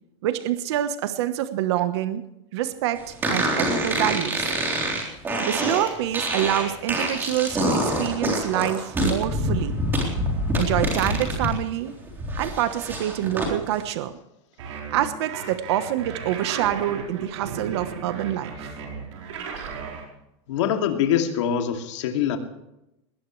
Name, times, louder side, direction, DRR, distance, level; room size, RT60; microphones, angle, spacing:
voice 1, 0.2-2.2 2.5-4.5 5.4-9.8 10.6-11.9 12.4-14.2 14.9-18.7, right 12 dB, 60° right, 10 dB, 1.2 m, -26 dB
sound 1, 3.2-11.5 11.9-13.5, right 1 dB, 15° right, 3.7 m, -26 dB
sound 2, 14.6-20.0, right 5 dB, 85° right, 5.0 m, -35 dB
voice 2, 20.5-22.4, left 9 dB, 75° left, 4 dB, 2.7 m, -24 dB
21.0 x 18.0 x 3.3 m, 0.87 s
supercardioid pair, 175°, 16 cm